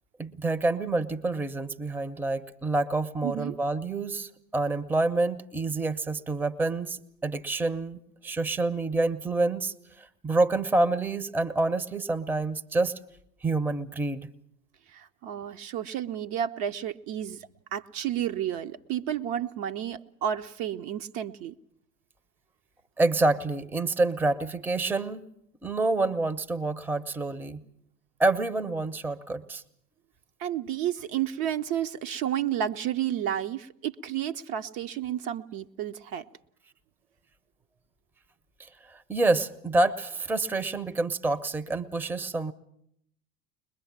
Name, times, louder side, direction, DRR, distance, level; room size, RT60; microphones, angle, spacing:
voice 1, 0.2-12.9 13.4-14.3 23.0-25.2 25.6-27.6 28.2-29.6 38.6-42.5, right 2 dB, 5° right, 17 dB, 0.8 m, -27 dB
voice 2, 3.2-3.6 14.9-21.5 30.4-36.2, right 10 dB, 45° right, 7 dB, 0.9 m, -31 dB
21.5 x 21.5 x 7.3 m, 0.73 s
figure-of-eight pair, 75°, 48 cm